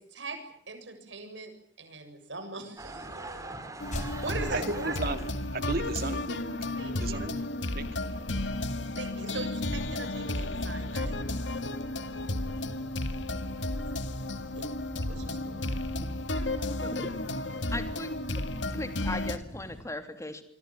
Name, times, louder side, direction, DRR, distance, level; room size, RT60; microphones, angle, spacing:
voice 1, 0.7-1.5 1.8-3.6 3.9-4.9 5.8-5.9 6.8-7.2 9.0-11.2 14.5-14.7 15.1-15.8, right 3 dB, 85° right, 7 dB, 7.4 m, -40 dB
sound 1, 2.8-5.5, right 2 dB, 20° right, 3.7 m, -42 dB
sound 2, 3.8-19.4, left 1 dB, 80° left, 2.1 m, -33 dB
sound 3, 3.9-19.8, equal, 45° left, 4.3 m, -46 dB
voice 2, 4.5-6.6 7.0-7.4 7.7-7.9, right 2 dB, 55° right, 10 dB, 2.3 m, -34 dB
voice 3, 17.7-18.1 18.4-18.5 18.8-20.4, left 2 dB, 15° left, 8 dB, 3.0 m, -37 dB
26.5 x 24.0 x 7.6 m, 0.66 s
head